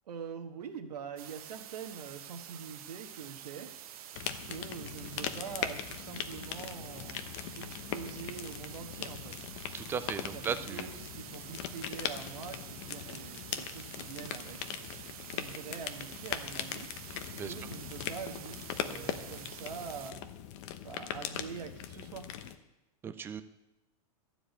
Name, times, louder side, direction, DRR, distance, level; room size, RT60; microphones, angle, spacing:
voice 1, 0.0-3.7 4.4-7.2 7.5-9.4 10.2-14.8 15.3-16.9 17.5-20.2 20.8-22.3, right 7 dB, 85° right, 6 dB, 1.5 m, -44 dB
sound 1, 1.2-20.1, right 10 dB, 65° right, 0.9 m, -48 dB
sound 2, 4.1-22.6, left 10 dB, 45° left, 0.9 m, -40 dB
voice 2, 9.7-10.9 17.4-17.5 23.0-23.4, right 7 dB, 10° right, 11 dB, 0.4 m, -36 dB
12.5 x 5.0 x 8.3 m, 0.96 s
supercardioid pair, 150°, 20 cm